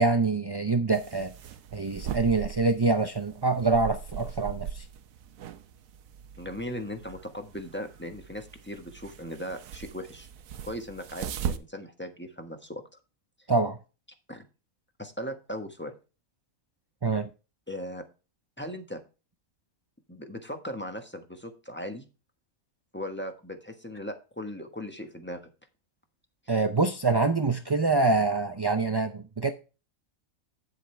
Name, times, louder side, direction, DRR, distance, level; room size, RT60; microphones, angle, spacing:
voice 1, 0.0-1.3 1.7-4.9 13.5-13.8 17.0-17.3 26.5-29.5, right 3 dB, 35° right, 0.4 m, -25 dB
sound 1, 0.9-11.6, right 8 dB, 80° right, 1.2 m, -39 dB
voice 2, 6.4-10.3 10.6-12.8 14.3-14.4 15.0-15.9 17.7-18.0 18.6-19.0 20.1-22.0 22.9-25.5, equal, 10° left, 1.3 m, -38 dB
9.2 x 8.0 x 3.3 m
omnidirectional pair, 1.4 m